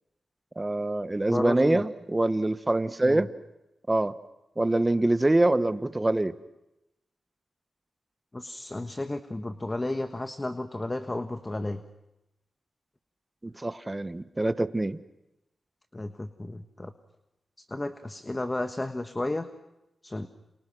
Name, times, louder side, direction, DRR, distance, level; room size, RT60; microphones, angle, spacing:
voice 1, 0.6-3.3 3.9-4.1 4.6-6.3 13.4-15.0, right 2 dB, 20° right, 12 dB, 1.2 m, -25 dB
voice 2, 1.3-1.8 3.0-3.3 8.3-11.8 15.9-16.9 17.7-19.5 20.0-20.3, left 2 dB, 25° left, 8 dB, 1.4 m, -33 dB
29.5 x 28.0 x 6.2 m, 0.95 s
cardioid pair, 65°, 0 cm